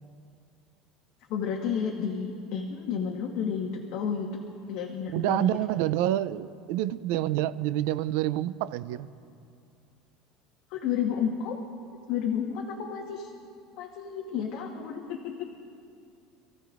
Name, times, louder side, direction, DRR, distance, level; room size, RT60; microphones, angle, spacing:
voice 1, 1.3-4.4 4.7-5.6 10.7-11.6 12.1-13.3 13.8-15.5, left 7 dB, 55° left, 1 dB, 1.2 m, -31 dB
voice 2, 5.1-9.1, right 13 dB, 70° right, 15 dB, 0.4 m, -27 dB
27.5 x 15.5 x 2.5 m, 2.4 s
cardioid pair, 170°, 0 cm